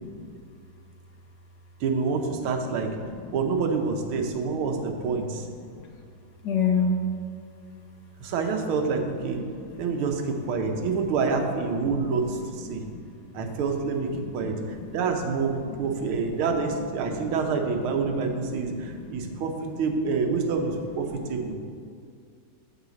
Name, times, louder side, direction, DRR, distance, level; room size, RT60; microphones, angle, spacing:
voice 1, 1.8-3.0 3.3-5.5 8.2-9.4 9.8-12.8 13.3-14.1 14.3-21.5, right 4 dB, 75° right, 4 dB, 1.7 m, -27 dB
voice 2, 6.4-6.9 9.4-9.6 12.7-13.0 13.4-13.5 14.4-15.0 15.7-15.9 17.0-17.3 17.9-18.0 18.6-19.4 21.2-21.5, left 5 dB, 60° left, 3 dB, 1.1 m, -30 dB
7.9 x 4.9 x 7.1 m, 2.3 s
omnidirectional pair, 2.4 m